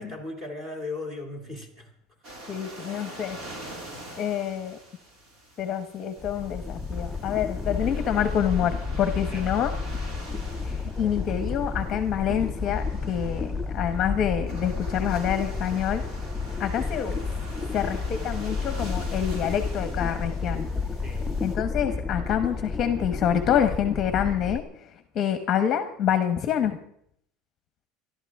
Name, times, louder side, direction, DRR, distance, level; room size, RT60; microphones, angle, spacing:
voice 1, 0.0-1.9 3.1-3.2 3.7-3.8 9.3-9.5 21.0-21.3, left 2 dB, 15° right, 3 dB, 2.4 m, -37 dB
sound 1, 2.2-21.5, right 1 dB, 40° right, 4.5 m, -45 dB
voice 2, 2.5-3.4 4.2-4.8 5.6-9.7 10.7-13.5 13.7-16.0 16.6-17.2 17.7-20.7 21.4-24.6 25.1-26.8, left 9 dB, 30° left, 9 dB, 1.0 m, -27 dB
sound 2, 6.2-24.6, left 4 dB, 5° left, 0.5 m, -31 dB
26.5 x 12.0 x 3.6 m, 0.68 s
cardioid pair, 175°, 0 cm